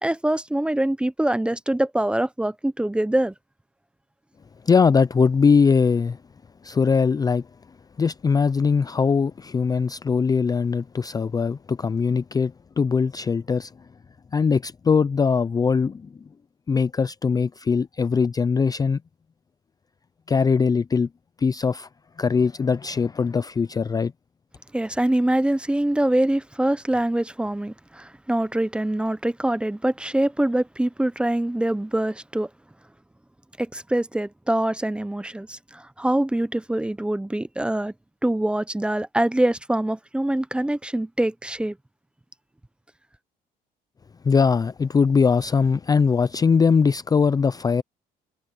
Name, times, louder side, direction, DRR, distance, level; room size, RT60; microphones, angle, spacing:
voice 1, 0.0-3.3 24.7-32.5 33.6-37.9 38.2-41.8, right 1 dB, 5° right, 0.8 m, -24 dB
voice 2, 4.7-6.2 6.6-7.5 8.0-13.7 14.3-16.1 16.7-19.0 20.3-21.1 21.4-21.9 22.2-24.1 44.2-47.8, left 5 dB, 20° left, 0.5 m, -21 dB
cardioid pair, 110°, 17 cm